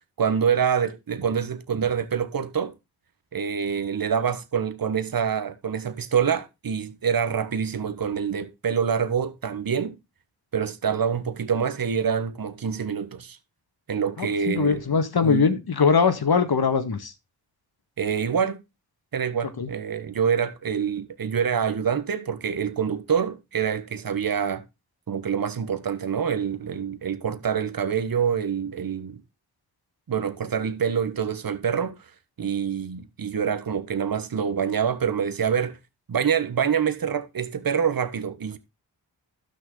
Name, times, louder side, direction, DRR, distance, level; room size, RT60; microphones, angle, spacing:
voice 1, 0.2-2.7 3.3-9.9 10.5-13.4 13.9-14.8 15.2-15.5 18.0-18.6 19.1-24.6 25.1-29.2 30.1-32.0 32.4-35.8 36.1-38.6, right 7 dB, 50° right, 1.3 m, -26 dB
voice 2, 14.2-17.1 19.6-19.7, left 5 dB, 55° left, 1.8 m, -21 dB
12.0 x 6.4 x 3.9 m
cardioid pair, 50°, 45 cm